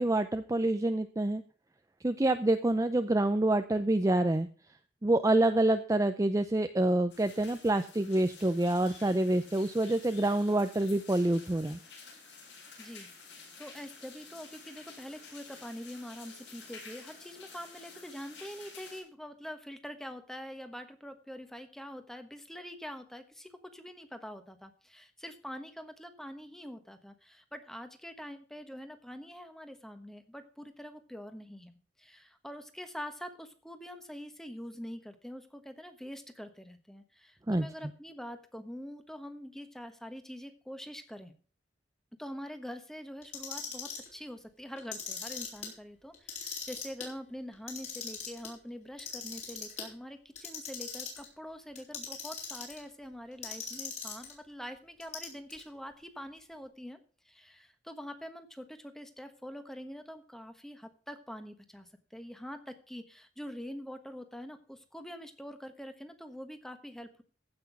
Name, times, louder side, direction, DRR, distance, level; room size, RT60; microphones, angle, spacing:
voice 1, 0.0-1.4 2.0-4.5 5.0-11.8 37.5-37.7, right 1 dB, 20° right, 8 dB, 0.5 m, -27 dB
sound 1, 7.1-19.0, left 4 dB, 70° left, 7.9 m, -51 dB
voice 2, 12.8-13.1 13.3-41.3 42.2-57.0 57.2-67.2, equal, 5° left, 8 dB, 1.2 m, -45 dB
Clock, 43.2-44.1 44.8-45.7 46.1-47.1 47.5-48.5 49.0-49.9 50.3-51.3 51.7-52.8 53.4-54.3 55.0-55.6, left 6 dB, 40° left, 4.3 m, -40 dB
15.0 x 6.1 x 6.0 m, 0.39 s
head